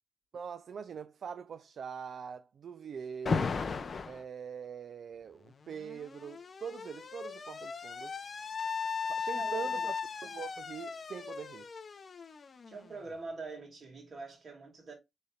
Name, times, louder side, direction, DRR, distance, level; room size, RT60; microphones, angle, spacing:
voice 1, 0.3-3.6 4.1-8.2 9.1-9.9 10.2-11.7, right 7 dB, 65° right, 0.4 m, -43 dB
Alarm, 3.3-4.2 5.4-13.1, left 5 dB, 40° left, 0.5 m, -37 dB
voice 2, 9.2-9.9 12.7-14.9, right 3 dB, 45° right, 2.2 m, -45 dB
6.8 x 3.3 x 2.3 m
wide cardioid pair, 170°, 0 cm